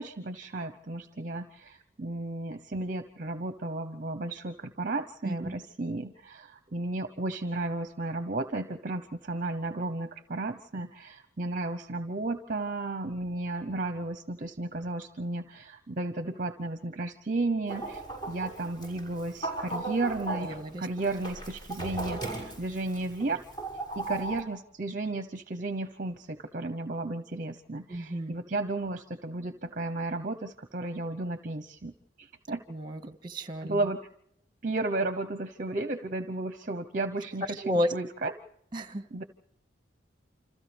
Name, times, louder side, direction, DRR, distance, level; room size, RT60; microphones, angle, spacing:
voice 1, 0.0-23.4 23.9-31.9 32.2-32.6 33.6-34.0 34.6-38.3 39.1-39.2, right 2 dB, 45° right, 9 dB, 0.9 m, -33 dB
voice 2, 5.2-5.5 20.4-20.9 27.9-28.3 32.7-33.8 37.6-37.9 38.7-39.0, equal, 25° right, 8 dB, 1.7 m, -32 dB
Chicken rooster, 17.7-24.4, right 2 dB, 20° left, 6.6 m, -37 dB
29.0 x 27.0 x 3.5 m, 0.72 s
head